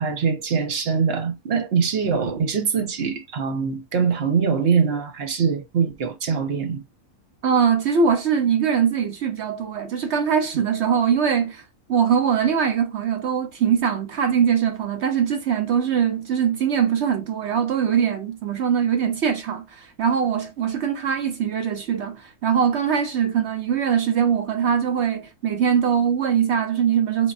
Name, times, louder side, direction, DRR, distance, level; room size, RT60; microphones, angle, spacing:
voice 1, 0.0-6.8, right 6 dB, 50° right, 1.0 m, -23 dB
voice 2, 7.4-11.6 11.9-27.3, right 7 dB, 65° right, 0.7 m, -22 dB
3.9 x 3.6 x 2.4 m
omnidirectional pair, 1.6 m